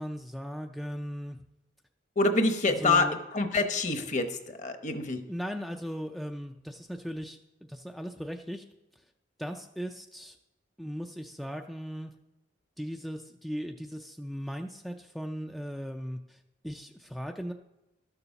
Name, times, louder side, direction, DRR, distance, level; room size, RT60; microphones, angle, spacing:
voice 1, 0.0-1.4 2.8-3.1 5.3-8.6 9.4-10.4 10.8-12.1 12.8-17.5, equal, ahead, 3 dB, 0.4 m, -38 dB
voice 2, 2.2-3.1 3.3-5.2, left 3 dB, 40° left, 7 dB, 0.9 m, -26 dB
12.5 x 6.9 x 5.8 m, 0.92 s
head